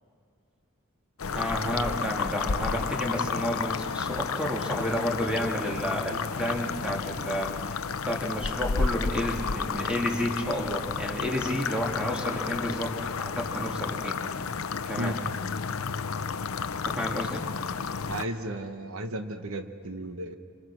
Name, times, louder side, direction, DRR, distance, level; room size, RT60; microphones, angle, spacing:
sound 1, 1.2-18.3, left 5 dB, 80° left, 0.7 m, -31 dB
voice 1, 1.3-14.4 14.8-15.2 16.8-17.4, equal, 5° right, -1 dB, 2.6 m, -31 dB
voice 2, 18.1-20.4, right 1 dB, 85° right, 7 dB, 1.2 m, -34 dB
28.0 x 26.0 x 6.1 m, 2.4 s
head